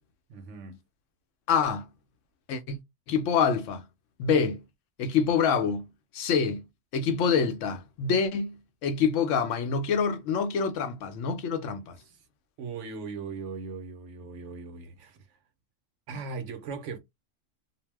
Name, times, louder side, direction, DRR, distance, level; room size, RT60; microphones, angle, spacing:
voice 1, 0.3-0.8 12.1-12.2 12.6-15.2 16.1-17.0, right 4 dB, 70° right, 1.0 m, -38 dB
voice 2, 1.5-1.9 2.5-2.8 3.1-3.8 4.2-4.6 5.0-5.9 6.1-6.6 6.9-8.6 8.8-11.9, left 6 dB, 75° left, 0.9 m, -26 dB
2.6 x 2.0 x 3.3 m
omnidirectional pair, 1.3 m